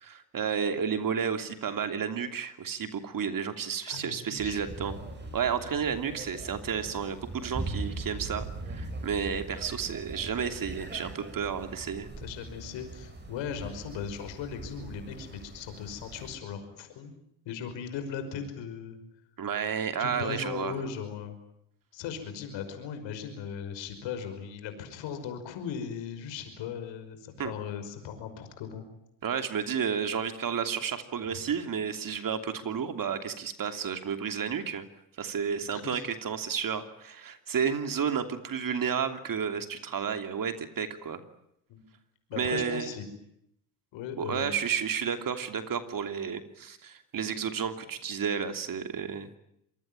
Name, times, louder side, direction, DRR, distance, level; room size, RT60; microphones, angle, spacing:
voice 1, 0.0-4.9 5.3-12.1 19.4-20.7 27.4-27.5 29.2-34.8 35.2-41.2 42.4-42.9 44.2-49.3, right 7 dB, 45° right, 8 dB, 3.0 m, -31 dB
voice 2, 3.9-4.6 12.2-17.1 17.5-19.0 20.0-21.4 21.9-28.9 35.7-36.0 41.7-41.8 42.3-43.0 43.9-44.6, left 7 dB, 75° left, 8 dB, 5.6 m, -38 dB
sound 1, 4.4-16.4, right 2 dB, 25° right, 6.8 m, -41 dB
26.0 x 21.0 x 9.0 m, 0.75 s
supercardioid pair, 85°, 45 cm